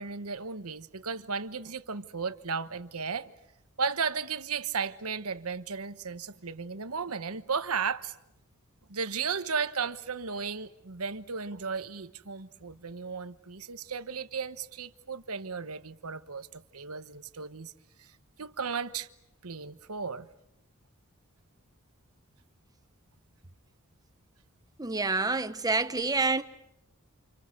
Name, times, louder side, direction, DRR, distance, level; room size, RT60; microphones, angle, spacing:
voice 1, 0.0-3.3 3.8-8.1 8.9-17.7 18.0-18.1 18.4-19.1 19.4-20.3, right 5 dB, 85° right, 1.2 m, -35 dB
voice 2, 24.8-26.4, right 3 dB, 15° right, 1.1 m, -27 dB
30.0 x 28.5 x 6.8 m
head